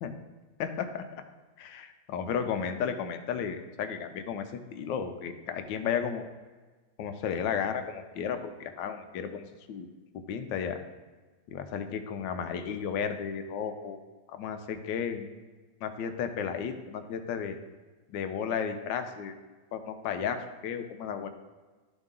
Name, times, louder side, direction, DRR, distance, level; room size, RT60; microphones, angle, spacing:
voice 1, 0.6-1.0 1.6-6.3 7.0-9.9 10.1-10.8 11.5-14.0 14.3-15.3 15.8-17.6 18.1-19.3 19.7-21.3, left 7 dB, 85° left, 7 dB, 1.4 m, -33 dB
11.5 x 4.1 x 3.7 m, 1.3 s
omnidirectional pair, 1.9 m